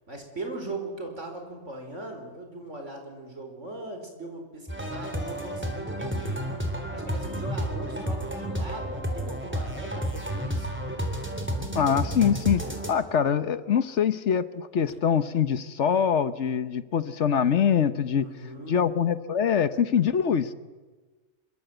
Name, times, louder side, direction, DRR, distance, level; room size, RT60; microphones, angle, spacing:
voice 1, 0.1-6.4 6.9-10.8 18.2-18.8, right 2 dB, 75° right, 4 dB, 5.2 m, -39 dB
sound 1, 4.7-12.9, equal, 10° right, 3.5 m, -31 dB
voice 2, 11.7-12.6 12.9-18.3 18.7-20.5, left 7 dB, 70° left, 13 dB, 1.3 m, -24 dB
26.0 x 23.5 x 8.0 m, 1.3 s
omnidirectional pair, 1.3 m